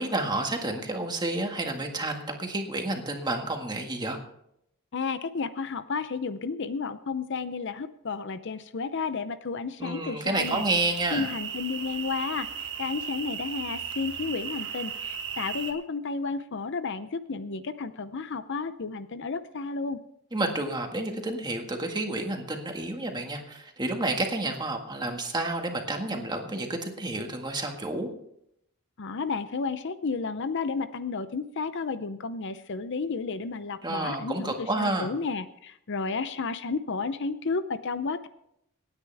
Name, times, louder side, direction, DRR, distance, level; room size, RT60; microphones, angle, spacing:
voice 1, 0.0-4.2 9.8-11.3 20.3-28.1 33.8-35.1, right 2 dB, 20° right, 3 dB, 1.8 m, -30 dB
voice 2, 4.9-10.6 11.1-20.0 29.0-38.3, left 4 dB, 55° left, 12 dB, 0.6 m, -32 dB
sound 1, 10.4-15.7, right 7 dB, 55° right, 1.9 m, -36 dB
27.0 x 9.7 x 3.5 m, 0.76 s
head